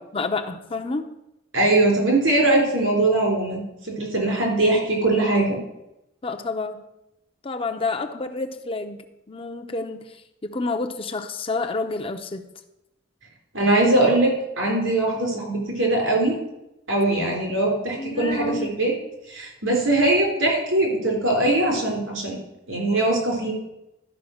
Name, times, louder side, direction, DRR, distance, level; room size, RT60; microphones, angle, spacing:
voice 1, 0.1-1.1 6.2-6.8 7.4-12.4 18.0-18.7, left 3 dB, 30° left, 6 dB, 0.6 m, -29 dB
voice 2, 1.5-5.6 13.5-16.4 16.9-18.9 19.3-22.4 22.7-23.5, right 2 dB, 85° right, 0 dB, 3.6 m, -21 dB
12.0 x 5.2 x 6.4 m, 0.89 s
head